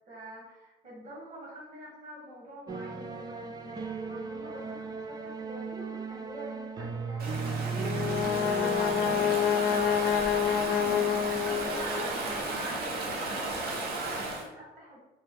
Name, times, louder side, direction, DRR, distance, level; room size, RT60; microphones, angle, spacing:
voice 1, 0.1-11.0 11.6-15.0, right 1 dB, 50° right, -6 dB, 1.5 m, -45 dB
sound 1, 2.7-12.4, right 4 dB, 25° right, 0.4 m, -37 dB
Stream / Ocean, 7.2-14.5, right 2 dB, 65° right, 0.9 m, -34 dB
Brass instrument, 7.7-12.1, left 9 dB, 60° left, 0.5 m, -28 dB
3.3 x 2.6 x 3.4 m, 1.0 s
cardioid pair, 110°, 17 cm